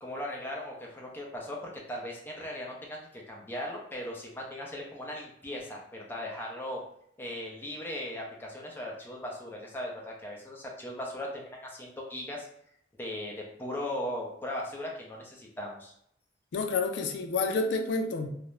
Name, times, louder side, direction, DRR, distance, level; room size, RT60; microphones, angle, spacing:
voice 1, 0.0-6.8 7.2-12.5 13.0-15.9, left 1 dB, 10° left, 0.5 m, -38 dB
voice 2, 16.5-18.3, left 3 dB, 85° left, 0.3 m, -29 dB
2.4 x 2.0 x 3.0 m
head